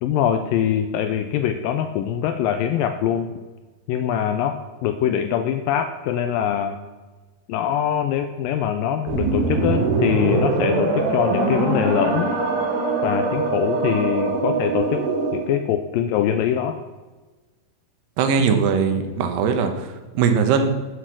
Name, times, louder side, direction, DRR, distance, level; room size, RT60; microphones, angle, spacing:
voice 1, 0.0-3.3 3.9-6.8 7.5-12.3 13.0-15.1 15.3-16.8, left 9 dB, 90° left, 8 dB, 2.0 m, -23 dB
sound 1, 9.1-15.5, right 3 dB, 65° right, 3.5 m, -22 dB
voice 2, 18.2-19.9 20.1-20.7, right 6 dB, 90° right, 7 dB, 3.2 m, -20 dB
8.9 x 7.9 x 6.1 m, 1.3 s
omnidirectional pair, 4.6 m